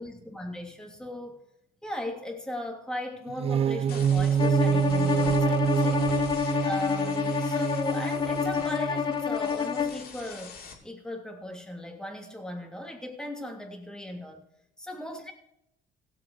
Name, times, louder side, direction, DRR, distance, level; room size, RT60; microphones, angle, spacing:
voice 1, 0.0-1.4 1.8-6.1 6.6-10.6 10.8-14.5 14.8-15.3, left 1 dB, 5° left, 1 dB, 2.9 m, -37 dB
sound 1, 3.3-9.2, right 8 dB, 35° right, 0.3 m, -27 dB
sound 2, 3.9-10.7, left 5 dB, 60° left, 3.1 m, -45 dB
Bowed string instrument, 4.4-10.0, left 7 dB, 25° left, 1.1 m, -28 dB
17.0 x 8.0 x 4.8 m, 0.80 s
cardioid pair, 110°, 17 cm